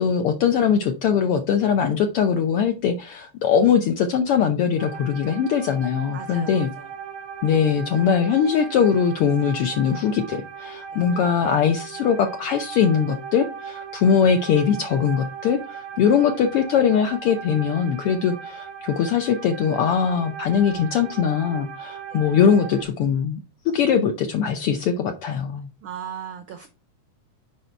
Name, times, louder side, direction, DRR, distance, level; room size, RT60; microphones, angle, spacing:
voice 1, 0.0-6.7 7.4-23.4 23.7-25.7, left 7 dB, 75° left, 6 dB, 1.3 m, -21 dB
sound 1, 4.8-22.8, right 7 dB, 60° right, 1.5 m, -38 dB
voice 2, 6.1-6.9 10.9-11.0 16.0-16.1 22.1-22.2 25.8-26.7, right 8 dB, 90° right, 8 dB, 1.1 m, -38 dB
6.7 x 5.2 x 4.4 m, 0.32 s
omnidirectional pair, 3.3 m